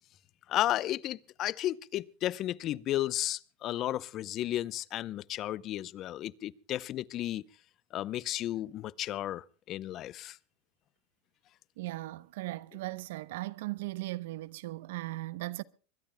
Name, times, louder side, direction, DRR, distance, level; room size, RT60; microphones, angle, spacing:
voice 1, 0.5-7.4 7.9-10.4, left 13 dB, 45° left, 0.7 m, -33 dB
voice 2, 11.8-15.6, right 19 dB, 75° right, 0.8 m, -38 dB
23.5 x 21.0 x 2.2 m
hypercardioid pair, 110°, 0 cm